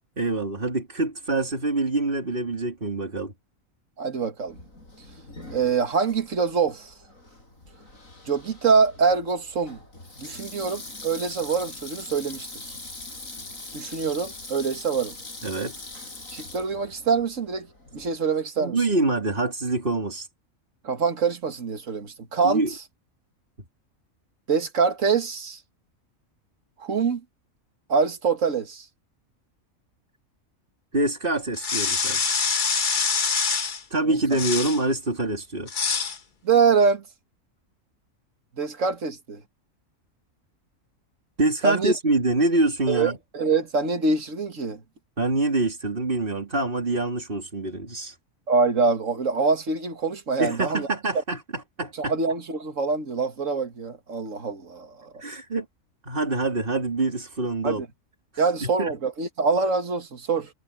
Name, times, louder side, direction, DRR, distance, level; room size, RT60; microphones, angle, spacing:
voice 1, 0.2-3.3 15.4-15.7 18.6-20.3 22.4-22.7 30.9-32.4 33.9-35.7 41.4-43.2 45.2-48.2 50.4-52.1 55.2-55.6 56.0-57.8 58.3-58.9, right 2 dB, 40° right, 3.4 m, -25 dB
voice 2, 4.0-4.6 5.5-6.9 8.3-9.8 10.2-12.7 13.7-15.1 16.3-17.7 17.9-18.8 20.8-22.6 24.5-25.6 26.8-27.2 27.9-28.9 34.1-34.2 36.4-37.0 38.6-39.4 41.6-41.9 42.9-44.8 48.5-50.9 52.0-55.1 57.6-57.9 58.4-60.5, right 5 dB, 65° right, 2.1 m, -24 dB
Sink (filling or washing), 4.5-18.2, left 2 dB, 75° left, 7.7 m, -42 dB
sound 1, 31.5-33.8 34.3-34.8 35.7-36.2, left 5 dB, 40° left, 1.1 m, -25 dB
omnidirectional pair, 1.4 m